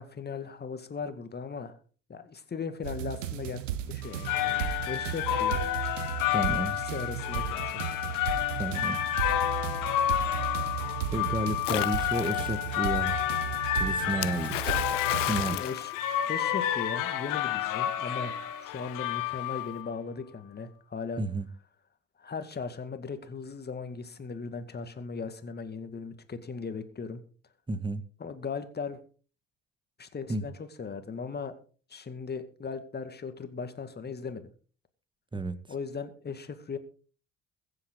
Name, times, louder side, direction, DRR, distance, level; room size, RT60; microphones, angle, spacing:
voice 1, 0.0-1.7 2.1-3.6 3.9-5.6 6.7-8.0 15.5-15.9 16.3-21.2 22.2-27.2 28.2-29.0 30.0-31.5 31.9-34.4 35.7-36.8, left 5 dB, 25° left, 2.2 m, -38 dB
sound 1, 2.8-15.6, right 11 dB, 75° right, 1.0 m, -35 dB
sound 2, 4.0-19.9, left 12 dB, 55° left, 1.7 m, -30 dB
voice 2, 6.3-6.8 8.6-9.0 11.1-13.2 13.8-14.7 15.3-15.6 21.2-21.5 27.7-28.0 30.3-30.4 35.3-35.6, right 2 dB, 10° right, 1.7 m, -31 dB
Splash splatter, 11.6-12.6 14.2-16.7, left 16 dB, 70° left, 0.6 m, -34 dB
22.5 x 7.9 x 3.9 m
figure-of-eight pair, 55°, 38 cm